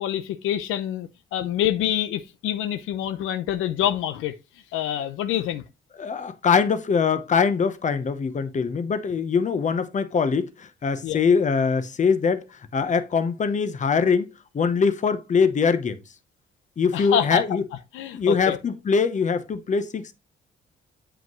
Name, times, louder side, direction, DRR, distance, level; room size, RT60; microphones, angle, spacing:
voice 1, 0.0-4.4 4.7-5.6 11.0-11.2 16.9-17.4 17.9-18.6, left 11 dB, 90° left, 0.7 m, -26 dB
voice 2, 6.0-14.3 14.5-16.0 16.8-17.6 18.1-20.1, left 5 dB, 40° left, 0.9 m, -23 dB
7.9 x 5.0 x 3.1 m
cardioid pair, 90°, 20 cm